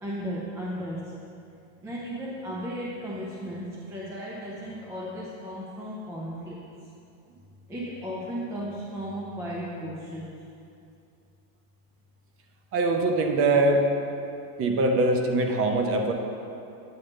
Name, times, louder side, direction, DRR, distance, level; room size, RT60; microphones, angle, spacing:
voice 1, 0.0-1.1 1.8-6.6 7.7-10.4, equal, 5° right, -4 dB, 0.4 m, -35 dB
voice 2, 12.7-13.9 14.6-16.1, right 2 dB, 30° right, 3 dB, 0.7 m, -22 dB
9.3 x 3.5 x 6.6 m, 2.6 s
supercardioid pair, 135°, 49 cm